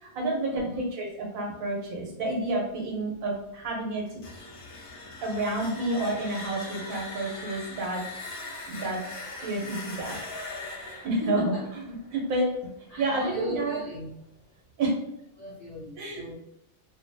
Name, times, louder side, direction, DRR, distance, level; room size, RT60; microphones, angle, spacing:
voice 1, 0.0-4.0 5.2-8.0 8.7-9.0 9.4-10.2 11.0-12.5 13.0-13.8 14.8-14.9 16.0-16.2, right 2 dB, 80° right, -1 dB, 1.2 m, -29 dB
sound 1, 4.1-12.9, left 2 dB, 50° left, 0.7 m, -41 dB
voice 2, 11.2-11.6 12.9-14.1 15.4-16.3, left 2 dB, 70° left, -6 dB, 0.3 m, -37 dB
2.6 x 2.2 x 2.6 m, 0.79 s
omnidirectional pair, 1.5 m